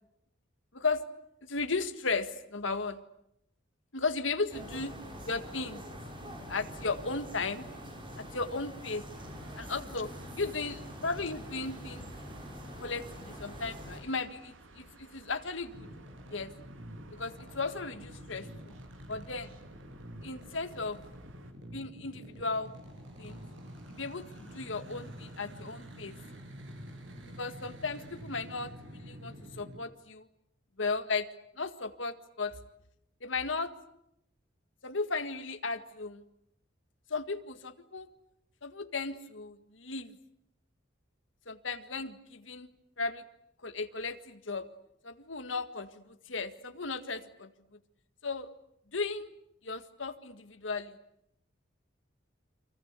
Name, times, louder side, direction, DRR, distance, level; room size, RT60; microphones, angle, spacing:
voice 1, 1.4-3.0 3.9-4.9 5.2-5.8 6.5-7.7 8.2-9.0 9.6-10.1 10.4-12.1 12.8-15.9 16.3-16.5 17.1-18.8 19.1-19.5 20.2-21.0 21.6-22.7 23.2-23.4 23.9-26.1 27.4-30.3 30.8-31.3 31.6-32.6 33.2-33.7 34.8-36.2 37.1-38.1 38.6-40.2 41.5-42.7 43.0-43.2 43.6-44.7 45.0-47.5 48.2-48.5 48.9-49.3 49.6-51.0, left 4 dB, 75° left, 9 dB, 1.8 m, -35 dB
sound 1, 4.5-14.0, equal, 25° right, 5.9 m, -45 dB
sound 2, 9.1-21.5, right 1 dB, 90° right, 3.0 m, -54 dB
sound 3, 15.7-29.8, equal, 70° right, 7.3 m, -48 dB
29.0 x 24.5 x 8.3 m, 0.79 s
head